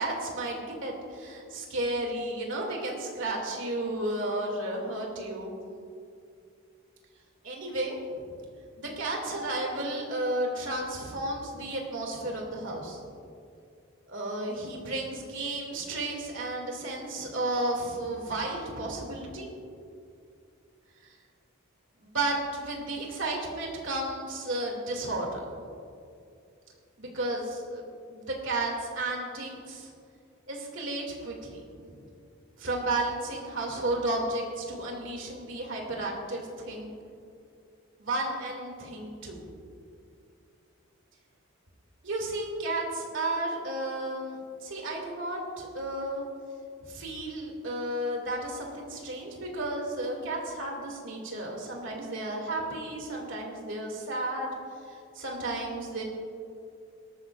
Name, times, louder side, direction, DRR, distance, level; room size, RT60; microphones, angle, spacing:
voice 1, 0.0-5.5 7.4-8.0 8.8-13.0 14.1-19.5 22.0-25.4 27.0-27.8 28.1-29.9 30.5-32.0 32.6-36.9 38.0-39.4 42.0-46.2 46.9-54.5 54.9-56.0, right 2 dB, 60° right, 0 dB, 2.4 m, -33 dB
19.5 x 13.5 x 2.5 m, 2.4 s
head